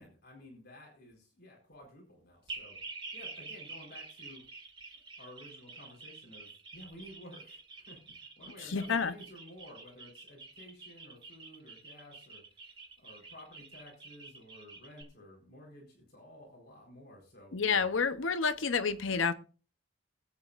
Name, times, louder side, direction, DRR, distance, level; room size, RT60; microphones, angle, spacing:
voice 1, 0.0-2.8 3.1-4.5 5.2-17.5, left 1 dB, 55° left, 4.3 m, -53 dB
sound 1, 2.5-15.0, right 3 dB, 25° right, 2.2 m, -48 dB
voice 2, 8.6-9.1 17.5-19.3, left 5 dB, 85° left, 0.8 m, -29 dB
20.0 x 9.0 x 2.5 m
head